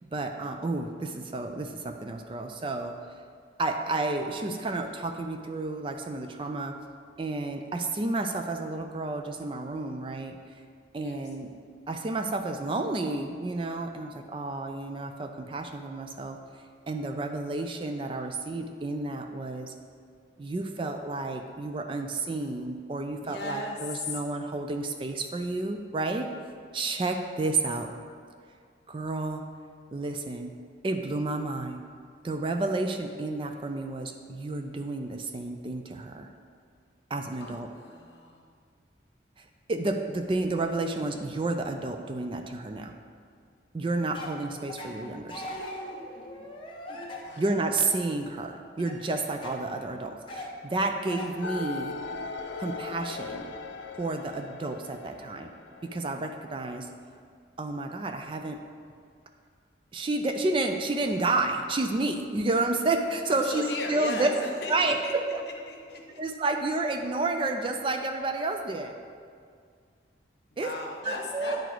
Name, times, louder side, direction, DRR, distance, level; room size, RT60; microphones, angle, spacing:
voice 1, 0.1-3.0 3.6-6.8 7.2-10.4 10.9-11.5 11.9-16.4 16.9-19.7 20.4-26.3 26.7-27.9 28.9-29.4 29.9-30.5 30.8-31.8 32.2-36.3 37.1-37.7 39.4-43.0 43.7-45.6 47.4-52.0 52.6-53.5 54.0-55.5 55.8-56.9 57.6-58.6 59.9-64.3 64.7-65.4 66.2-69.0 70.6-70.7 71.0-71.6, right 2 dB, 25° right, 5 dB, 0.3 m, -30 dB
voice 2, 23.2-24.2 37.4-38.5 47.2-47.5 63.3-65.1 65.7-66.2 70.5-71.6, left 2 dB, 60° left, 1 dB, 1.0 m, -37 dB
sound 1, 44.1-44.4 44.7-45.0 45.3-47.9 48.8-49.6 50.3-50.6 51.1-51.4 51.6-52.6 53.5-53.6 53.8-54.7, left 1 dB, 25° left, 0.8 m, -41 dB
sound 2, 51.4-56.5, left 4 dB, 80° left, 0.4 m, -39 dB
9.2 x 4.7 x 3.9 m, 2.1 s
head